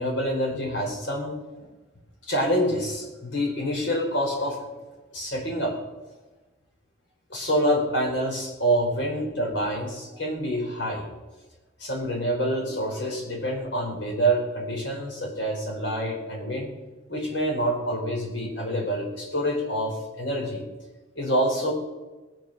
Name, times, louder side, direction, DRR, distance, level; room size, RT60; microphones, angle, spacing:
voice 1, 0.0-1.3 1.6-1.7 2.2-4.6 5.1-5.7 7.3-11.1 11.8-16.7 17.1-20.6 21.1-21.7, equal, 65° left, 0 dB, 4.5 m, -27 dB
19.5 x 7.6 x 6.6 m, 1.2 s
head